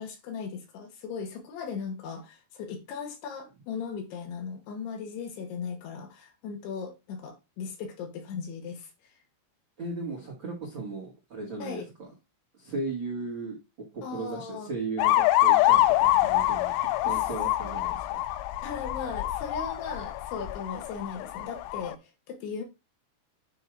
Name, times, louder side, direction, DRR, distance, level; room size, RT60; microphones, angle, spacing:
voice 1, 0.0-9.1 11.6-11.9 14.0-14.7 17.0-17.2 18.6-22.6, left 6 dB, 70° left, 2.9 m, -38 dB
voice 2, 9.8-12.1 12.6-13.6 13.9-16.7 17.0-18.2, right 3 dB, 70° right, 1.1 m, -36 dB
sound 1, 15.0-21.9, left 14 dB, 90° left, 3.0 m, -25 dB
9.7 x 4.6 x 2.4 m
omnidirectional pair, 5.4 m